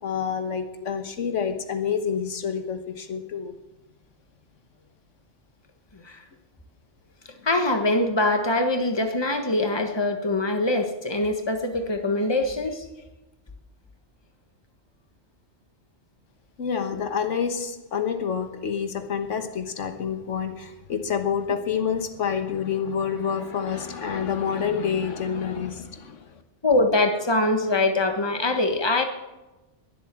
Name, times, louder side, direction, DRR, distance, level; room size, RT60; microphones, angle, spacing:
voice 1, 0.0-3.6 16.6-26.2, left 7 dB, 90° left, 7 dB, 1.6 m, -28 dB
voice 2, 7.4-12.8 26.6-29.0, left 2 dB, 20° left, 5 dB, 1.5 m, -23 dB
21.5 x 7.9 x 7.6 m, 1.0 s
omnidirectional pair, 1.2 m